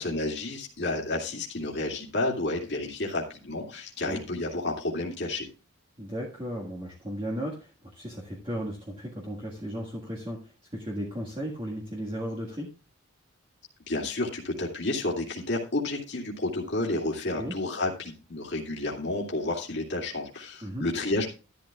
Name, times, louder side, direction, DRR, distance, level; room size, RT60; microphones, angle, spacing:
voice 1, 0.0-5.5 13.9-21.3, left 2 dB, 50° left, -2 dB, 2.3 m, -31 dB
voice 2, 6.0-12.7 17.4-17.5 20.6-20.9, equal, 20° right, -3 dB, 1.7 m, -35 dB
12.5 x 12.0 x 2.3 m, 0.33 s
head